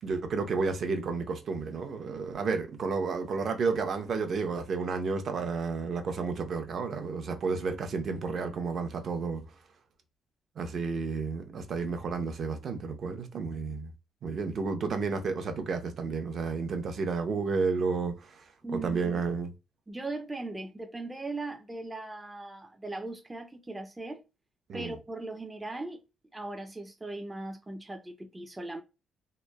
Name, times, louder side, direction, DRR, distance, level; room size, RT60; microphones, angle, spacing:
voice 1, 0.0-9.4 10.6-13.9 14.2-18.4 18.7-19.5 24.7-24.9, right 4 dB, 55° right, 0.6 m, -31 dB
voice 2, 18.6-19.2 19.9-24.2 24.7-26.0 26.3-28.8, right 2 dB, 15° right, 0.4 m, -39 dB
2.9 x 2.1 x 2.2 m
cardioid pair, 90°, 0 cm